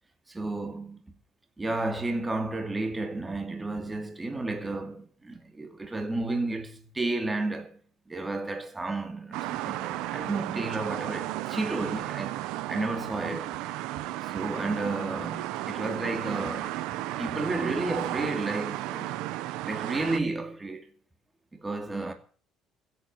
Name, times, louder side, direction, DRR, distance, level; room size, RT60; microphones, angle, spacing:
voice 1, 0.3-1.2 1.6-7.8 8.1-12.4 12.7-13.6 14.2-16.8 17.2-19.1 19.6-20.9 21.5-22.1, right 2 dB, 15° right, 2.6 m, -32 dB
sound 1, 9.3-20.2, right 15 dB, 80° right, 1.0 m, -34 dB
15.5 x 8.4 x 9.8 m
supercardioid pair, 95°, 0 cm